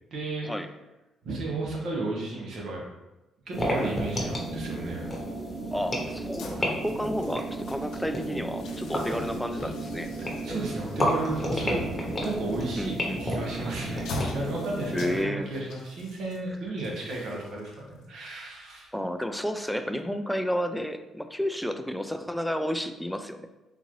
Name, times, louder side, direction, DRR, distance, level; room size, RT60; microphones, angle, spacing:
voice 1, 0.1-0.5 1.2-2.8 3.5-5.0 10.2-11.8 12.2-12.9 13.2-18.9, right 2 dB, 75° right, -2 dB, 1.0 m, -33 dB
sound 1, 3.5-15.2, equal, 20° left, 0.9 m, -32 dB
voice 2, 5.7-10.1 12.8-13.2 14.9-15.5 18.9-23.5, equal, ahead, 7 dB, 0.3 m, -31 dB
sound 2, 6.2-19.3, left 2 dB, 80° left, 0.5 m, -44 dB
3.9 x 2.5 x 3.0 m, 1.0 s
cardioid pair, 90°, 0 cm